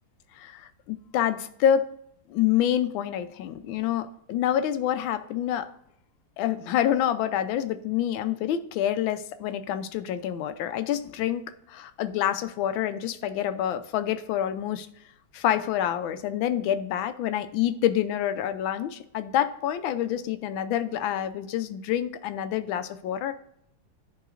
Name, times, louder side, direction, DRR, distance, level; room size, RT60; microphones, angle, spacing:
voice 1, 0.4-1.8 2.3-5.7 6.4-14.9 15.3-23.3, left 10 dB, 90° left, 11 dB, 1.4 m, -27 dB
11.5 x 3.9 x 2.5 m, 0.72 s
omnidirectional pair, 2.1 m